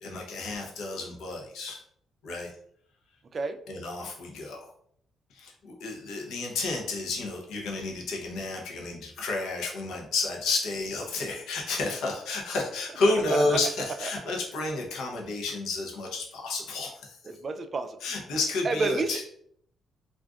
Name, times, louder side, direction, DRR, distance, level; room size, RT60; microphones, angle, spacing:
voice 1, 0.0-1.8 2.2-2.5 3.7-4.7 5.3-17.2 18.0-19.4, left 3 dB, 80° left, 0 dB, 0.7 m, -31 dB
voice 2, 13.3-13.6 17.4-18.0 18.6-19.1, right 3 dB, 40° right, 8 dB, 0.3 m, -29 dB
2.4 x 2.4 x 3.5 m, 0.65 s
cardioid pair, 90°, 0 cm